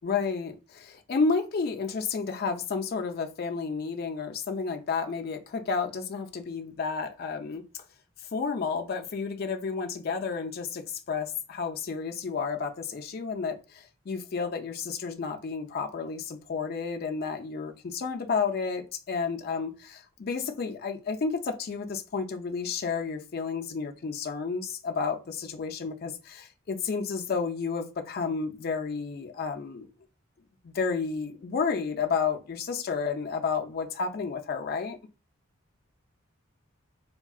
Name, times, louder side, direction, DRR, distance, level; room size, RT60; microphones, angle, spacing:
voice 1, 0.0-7.6 8.3-29.9 30.6-35.0, left 5 dB, 45° left, 0.4 m, -31 dB
3.5 x 2.1 x 2.3 m
head